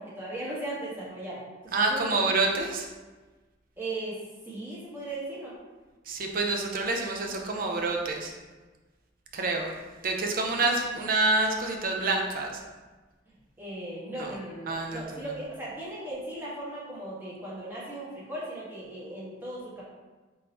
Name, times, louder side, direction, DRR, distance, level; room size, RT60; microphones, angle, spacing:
voice 1, 0.0-2.2 3.8-4.2 4.5-5.5 13.6-19.8, right 1 dB, 10° right, -8 dB, 1.2 m, -37 dB
voice 2, 1.7-2.9 6.1-8.3 9.3-9.7 10.0-12.6 14.2-14.3 14.7-15.2, right 2 dB, 50° right, 2 dB, 0.6 m, -27 dB
3.7 x 2.7 x 4.2 m, 1.3 s
head